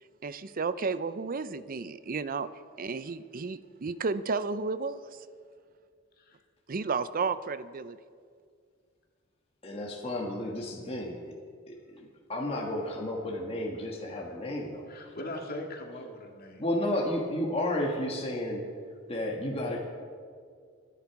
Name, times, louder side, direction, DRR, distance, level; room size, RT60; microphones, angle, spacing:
voice 1, 0.2-2.5 2.8-5.3 6.7-8.0, right 4 dB, 45° right, 14 dB, 0.5 m, -32 dB
voice 2, 9.6-11.3 11.7-14.9 16.6-18.6 19.1-19.8, left 1 dB, 30° left, -1 dB, 1.7 m, -32 dB
voice 3, 14.9-16.6, left 1 dB, 50° left, 1 dB, 2.1 m, -40 dB
25.0 x 10.0 x 4.8 m, 2.1 s
head